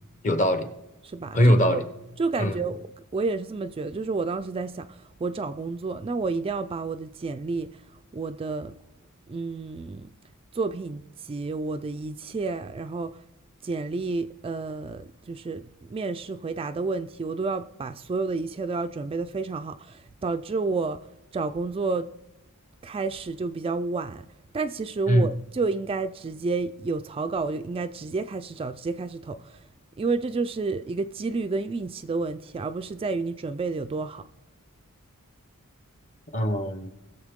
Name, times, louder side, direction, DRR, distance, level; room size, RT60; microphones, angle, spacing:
voice 1, 0.2-0.7 1.3-1.9 2.4-2.5 25.1-25.3 36.3-36.9, equal, 35° left, 1.0 m, -21 dB
voice 2, 1.0-1.8 2.2-2.9 3.1-7.8 8.1-8.8 9.3-10.1 10.5-13.2 13.6-21.1 21.3-22.1 22.8-24.3 24.5-29.7 30.0-34.3, right 3 dB, 25° right, 0.3 m, -30 dB
19.0 x 6.9 x 3.6 m
head